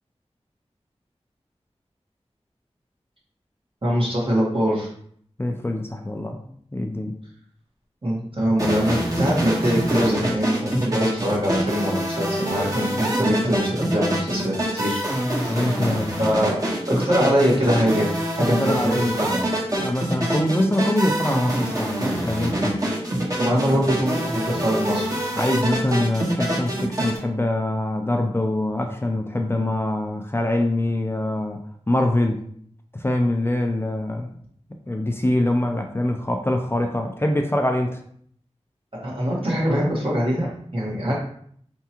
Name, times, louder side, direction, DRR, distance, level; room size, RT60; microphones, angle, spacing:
voice 1, 3.8-4.9 8.0-15.0 15.4-15.8 16.2-16.6 17.0-19.4 23.4-25.2 38.9-41.1, equal, 50° right, -5 dB, 1.6 m, -23 dB
voice 2, 5.4-6.4 6.7-7.2 15.5-16.3 17.2-17.3 18.4-19.3 19.8-22.9 23.5-23.6 25.3-32.4 32.9-34.3 34.9-38.0, left 1 dB, 20° left, 3 dB, 0.5 m, -24 dB
sound 1, 8.6-27.2, right 1 dB, 30° right, 1.2 m, -25 dB
4.4 x 3.5 x 2.9 m, 0.63 s
wide cardioid pair, 50°, 12 cm